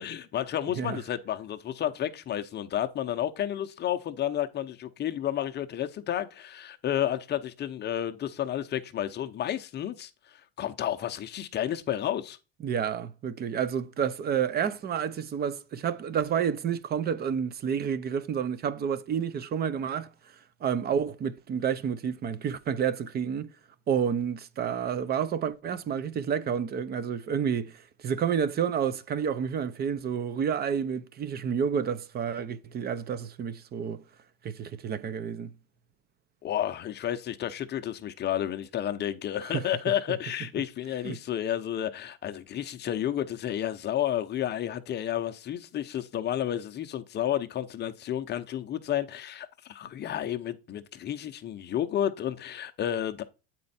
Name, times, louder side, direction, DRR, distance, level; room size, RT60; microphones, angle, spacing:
voice 1, 0.0-10.1 10.6-12.4 36.4-53.2, left 11 dB, 30° left, 0.7 m, -31 dB
voice 2, 12.6-23.5 23.9-34.0 34.4-35.5 39.4-39.7 41.0-41.2, right 7 dB, 30° right, 0.6 m, -30 dB
8.4 x 4.4 x 4.1 m
supercardioid pair, 130°, 34 cm